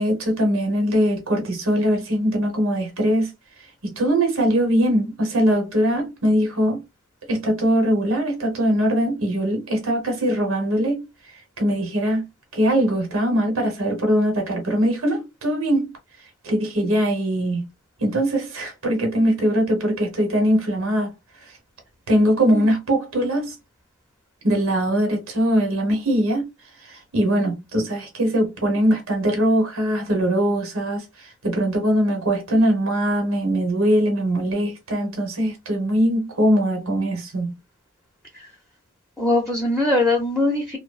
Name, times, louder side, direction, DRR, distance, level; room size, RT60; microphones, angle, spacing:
voice 1, 0.0-3.3 3.8-6.8 7.3-11.1 11.6-12.2 12.5-15.9 16.4-17.6 18.0-21.1 22.1-23.5 24.4-26.5 26.8-37.5, equal, 85° right, 1.0 m, -21 dB
voice 2, 39.2-40.8, left 2 dB, ahead, 0.5 m, -21 dB
2.6 x 2.0 x 2.3 m
head